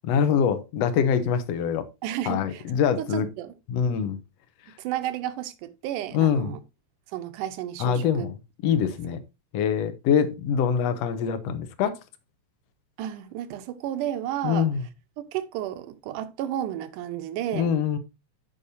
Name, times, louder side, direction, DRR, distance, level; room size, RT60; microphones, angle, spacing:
voice 1, 0.0-1.8 2.3-3.3 3.7-4.2 6.1-6.5 7.8-8.3 8.6-9.2 9.5-12.0 14.4-14.8 17.5-18.0, left 7 dB, 70° left, 1.6 m, -24 dB
voice 2, 2.0-2.6 3.0-3.5 4.8-6.6 7.1-8.3 8.7-8.8 13.0-14.7 15.3-17.7, right 12 dB, 75° right, 2.2 m, -32 dB
13.5 x 5.4 x 2.7 m
omnidirectional pair, 4.1 m